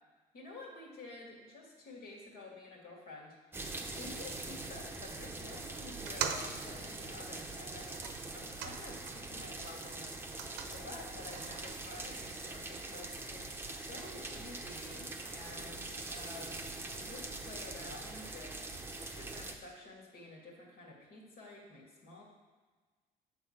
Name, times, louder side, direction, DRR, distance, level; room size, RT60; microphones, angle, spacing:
voice 1, 0.3-8.1 8.3-10.2 10.7-18.6 19.1-22.2, left 2 dB, 65° left, -2 dB, 2.5 m, -50 dB
sound 1, 3.5-19.6, right 2 dB, 15° right, 0.8 m, -43 dB
sound 2, 6.0-9.4 9.7-11.7, right 8 dB, 85° right, 0.7 m, -43 dB
8.5 x 4.0 x 6.6 m, 1.4 s
cardioid pair, 110°, 17 cm